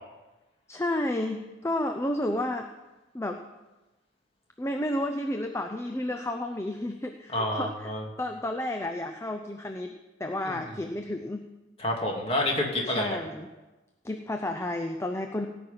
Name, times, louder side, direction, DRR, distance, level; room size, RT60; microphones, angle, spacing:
voice 1, 0.7-2.7 3.1-3.4 4.6-7.9 8.2-9.9 10.2-11.5 12.8-13.5 14.0-15.5, left 1 dB, 15° left, 4 dB, 0.6 m, -31 dB
voice 2, 7.3-8.0 10.5-10.6 11.8-13.2, left 1 dB, 30° left, 0 dB, 2.5 m, -28 dB
17.5 x 6.1 x 8.9 m, 1.1 s
head